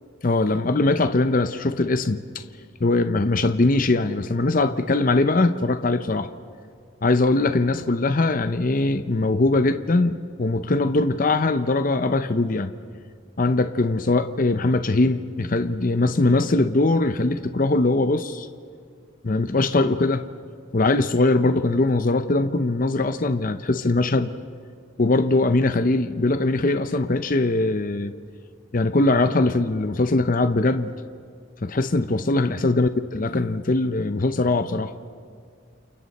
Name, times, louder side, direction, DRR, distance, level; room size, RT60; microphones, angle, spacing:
voice 1, 0.2-2.4 2.8-6.3 7.0-12.7 13.4-18.5 19.2-20.2 20.7-24.3 25.0-28.1 28.7-30.9 31.6-34.9, left 2 dB, 40° left, 10 dB, 0.6 m, -21 dB
29.5 x 28.5 x 4.2 m, 2.1 s
head